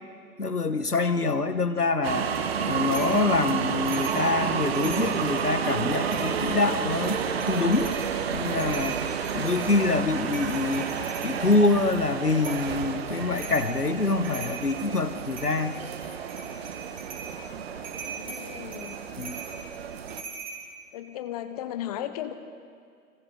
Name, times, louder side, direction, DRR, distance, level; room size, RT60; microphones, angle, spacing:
voice 1, 0.4-2.3 2.7-7.2 7.5-8.0 8.3-9.0 9.3-10.9 11.2-15.8 19.2-19.4, left 3 dB, 90° left, 10 dB, 1.4 m, -25 dB
sound 1, 2.0-20.2, right 7 dB, 45° right, 1.5 m, -31 dB
sound 2, 2.9-3.2 3.8-4.2 4.6-5.5 6.1-6.6 7.0-8.0 8.4-11.3 12.4-12.7 13.3-13.7 14.1-14.8 15.3-15.8 16.2-17.3 17.8-20.6, right 5 dB, 20° right, 4.8 m, -40 dB
voice 2, 9.3-9.9 18.0-19.0 20.9-22.3, left 11 dB, 25° left, 10 dB, 1.0 m, -36 dB
30.0 x 26.0 x 3.9 m, 2.2 s
figure-of-eight pair, 130°, 44 cm